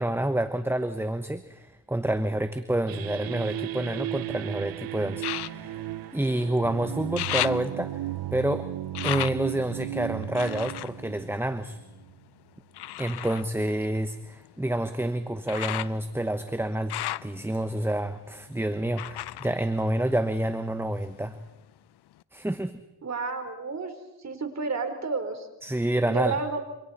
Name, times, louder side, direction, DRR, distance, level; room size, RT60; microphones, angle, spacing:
voice 1, 0.0-5.8 6.1-8.0 8.3-8.7 9.0-11.8 13.0-16.9 17.2-21.4 22.3-22.8 25.6-26.4, right 1 dB, 5° right, 10 dB, 1.1 m, -28 dB
sound 1, 2.9-12.2, right 15 dB, 55° right, 0.7 m, -35 dB
sound 2, 3.0-4.3 5.2-6.7 6.9-12.1 12.7-20.6 20.9-21.7 22.2-22.3, left 14 dB, 70° left, 0.7 m, -37 dB
voice 2, 23.0-23.9 24.2-25.5 26.1-26.6, right 4 dB, 40° right, 6 dB, 4.1 m, -30 dB
27.0 x 25.0 x 4.3 m, 0.99 s
cardioid pair, 70°, 42 cm